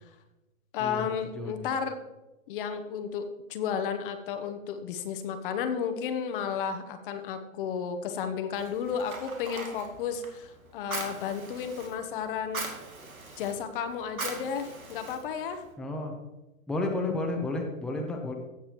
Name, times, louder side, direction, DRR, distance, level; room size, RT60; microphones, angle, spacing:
voice 1, 0.7-2.0 2.5-12.7 13.4-15.6, left 7 dB, 40° left, 8 dB, 1.0 m, -33 dB
voice 2, 1.3-1.7 15.8-16.1 16.7-18.3, left 2 dB, ahead, 0 dB, 0.9 m, -32 dB
Fire, 8.5-15.7, right 3 dB, 90° right, 2.5 m, -41 dB
15.5 x 7.3 x 3.0 m, 1.0 s
hypercardioid pair, 125°, 41 cm